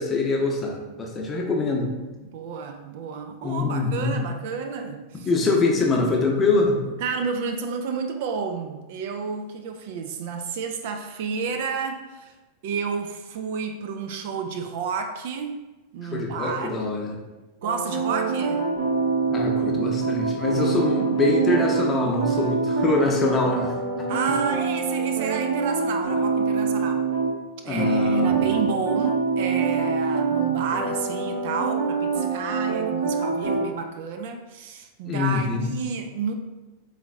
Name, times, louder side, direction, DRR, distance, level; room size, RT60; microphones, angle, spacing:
voice 1, 0.0-1.9 3.4-4.2 5.3-6.8 16.0-17.2 19.3-23.7 27.6-28.5 35.0-35.7, left 3 dB, 20° left, 0 dB, 0.7 m, -24 dB
voice 2, 2.2-5.3 7.0-12.3 12.6-15.6 15.9-16.9 17.6-18.6 20.5-20.8 24.1-27.0 27.6-36.3, right 5 dB, 50° right, 5 dB, 0.4 m, -31 dB
sound 1, 17.6-27.3 27.8-33.6, right 5 dB, 65° right, 0.9 m, -25 dB
3.9 x 3.2 x 3.6 m, 1.1 s
figure-of-eight pair, 90°, 0 cm